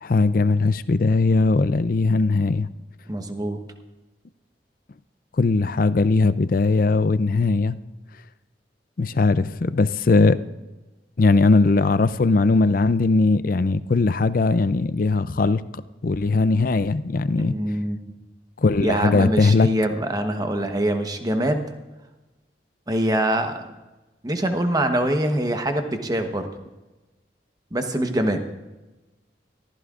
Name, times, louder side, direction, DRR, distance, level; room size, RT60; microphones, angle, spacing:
voice 1, 0.0-2.7 5.4-7.8 9.0-10.4 11.2-15.6 16.0-17.5 18.6-19.7, left 3 dB, 50° left, 14 dB, 0.5 m, -19 dB
voice 2, 3.1-3.6 17.4-18.0 18.8-21.7 22.9-23.6 24.2-26.5 27.7-28.4, right 1 dB, 20° right, 6 dB, 1.1 m, -24 dB
25.0 x 15.0 x 2.5 m, 1.1 s
head